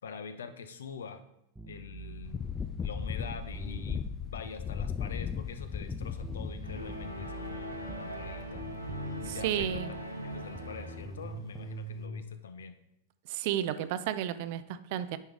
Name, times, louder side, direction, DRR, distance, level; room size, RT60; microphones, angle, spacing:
voice 1, 0.0-1.2 1.7-2.5 2.8-9.8 10.2-12.7, left 5 dB, 65° left, 10 dB, 0.6 m, -45 dB
sound 1, 1.6-4.1 5.9-9.5 10.6-12.2, right 2 dB, 5° right, 0.7 m, -44 dB
sound 2, 2.2-10.8 11.0-11.1, left 7 dB, 20° left, 0.3 m, -38 dB
sound 3, 6.6-11.3, equal, 90° right, 0.8 m, -40 dB
voice 2, 9.3-9.9 13.3-15.2, right 11 dB, 50° right, 13 dB, 0.4 m, -32 dB
9.8 x 4.6 x 3.4 m, 0.78 s
figure-of-eight pair, 90°, 0 cm